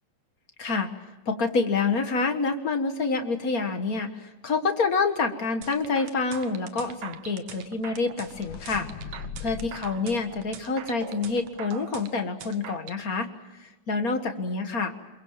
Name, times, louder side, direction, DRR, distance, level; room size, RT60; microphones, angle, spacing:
voice 1, 0.6-0.9 1.2-8.9 9.4-13.3 13.6-14.9, left 4 dB, 45° left, 6 dB, 1.1 m, -27 dB
sound 1, 5.6-13.0, right 9 dB, 70° right, 2.5 m, -42 dB
sound 2, 7.7-11.4, left 6 dB, 65° left, 3.3 m, -41 dB
27.5 x 22.5 x 7.4 m, 1.1 s
omnidirectional pair, 3.8 m